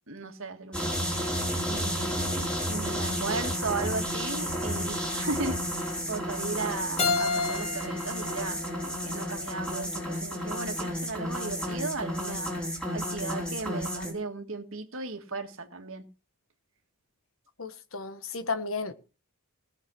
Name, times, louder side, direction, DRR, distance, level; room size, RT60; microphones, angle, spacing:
voice 1, 0.1-0.9 1.7-12.5 12.9-16.1, right 3 dB, 60° right, 1.9 m, -36 dB
sound 1, 0.7-14.1, equal, 5° left, 4.1 m, -32 dB
Keyboard (musical), 7.0-9.8, left 4 dB, 30° left, 2.4 m, -32 dB
voice 2, 17.6-18.9, left 4 dB, 65° left, 1.4 m, -33 dB
18.0 x 7.3 x 6.2 m
head